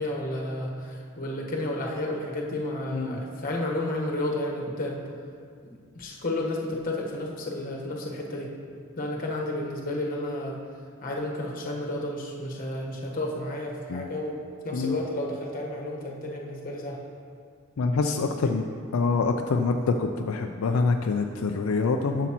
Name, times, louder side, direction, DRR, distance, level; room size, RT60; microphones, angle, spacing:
voice 1, 0.0-5.0 5.6-8.5 9.0-10.6 11.0-14.4 14.6-17.0 18.1-18.5, left 1 dB, 40° left, -1 dB, 1.2 m, -32 dB
voice 2, 17.8-18.6 18.9-22.3, left 4 dB, 80° left, 4 dB, 0.4 m, -25 dB
11.0 x 7.0 x 3.0 m, 2.2 s
head